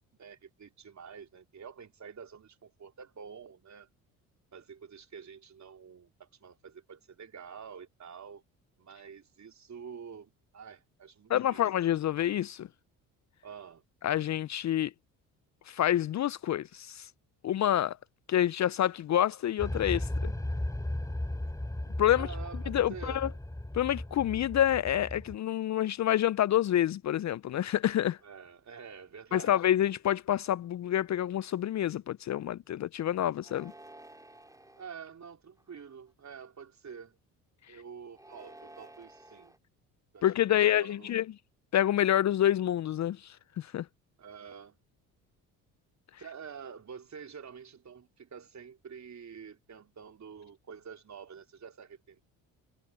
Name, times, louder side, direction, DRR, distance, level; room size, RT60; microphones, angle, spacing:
voice 1, 0.2-3.9 4.5-8.4 8.8-11.6 13.4-13.8 22.1-22.6 22.9-23.3 28.2-29.5 34.8-37.2 37.7-39.6 40.1-41.1 44.2-44.8 46.2-52.2, right 6 dB, 40° right, 3.9 m, -48 dB
voice 2, 11.3-12.7 14.0-14.9 15.7-17.1 17.4-18.0 18.3-20.3 22.0-22.3 22.7-23.3 23.7-28.2 29.3-33.7 40.2-41.2 41.7-43.9, left 11 dB, 45° left, 0.6 m, -28 dB
sound 1, 19.6-25.3, left 1 dB, 10° left, 3.7 m, -35 dB
sound 2, 33.4-34.9 35.6-36.1 38.1-39.6, right 1 dB, 10° right, 4.1 m, -52 dB
hypercardioid pair, 60°, 41 cm